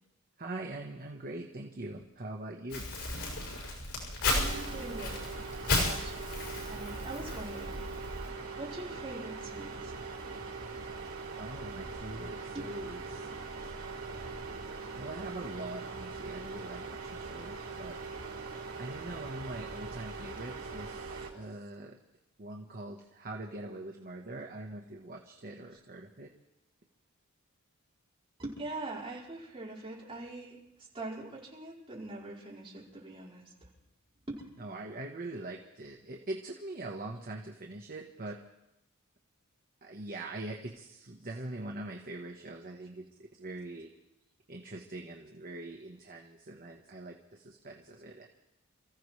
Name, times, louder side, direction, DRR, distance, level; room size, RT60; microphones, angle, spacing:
voice 1, 0.4-2.8 11.4-13.3 14.9-18.0 18.8-22.0 22.4-26.3 34.6-38.4 39.8-43.0 43.4-43.9 44.5-48.3, right 2 dB, 40° right, 1 dB, 1.1 m, -42 dB
Crumpling crinkling, 2.7-8.3, left 2 dB, 85° left, 6.1 m, -34 dB
sound 1, 4.3-21.3, right 4 dB, 75° right, 3.4 m, -41 dB
voice 2, 4.4-5.2 5.8-7.9 8.6-9.9 12.5-12.8 13.1-13.5 28.4-30.6 30.9-33.5 34.3-34.4, right 2 dB, 25° right, -6 dB, 4.7 m, -43 dB
29.0 x 15.0 x 3.2 m, 0.87 s
head